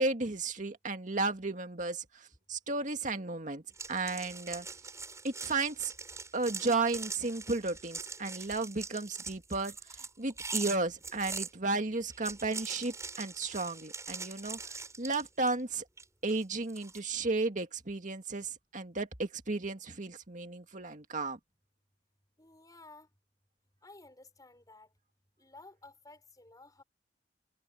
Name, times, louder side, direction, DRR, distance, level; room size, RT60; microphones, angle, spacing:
voice 1, 0.0-3.6 3.9-4.7 5.2-5.9 6.3-9.7 10.2-15.8 16.2-21.4, right 3 dB, 45° right, 2.1 m, -34 dB
sound 1, 3.7-11.5 12.1-15.6 16.0-17.0, right 4 dB, 20° right, 7.3 m, -42 dB
voice 2, 22.4-23.1 23.8-24.9 25.4-26.8, left 2 dB, 20° left, 5.8 m, -54 dB
head